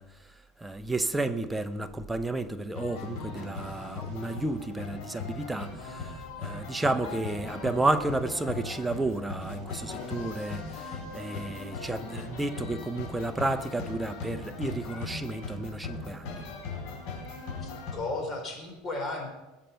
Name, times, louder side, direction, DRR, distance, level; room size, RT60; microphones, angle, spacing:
voice 1, 0.0-16.4, right 2 dB, 5° right, 0.8 m, -32 dB
sound 1, 2.7-17.9, left 4 dB, 60° left, 5.2 m, -39 dB
voice 2, 17.6-19.3, left 2 dB, 25° left, 4.1 m, -35 dB
21.0 x 7.7 x 5.7 m
supercardioid pair, 140°, 0 cm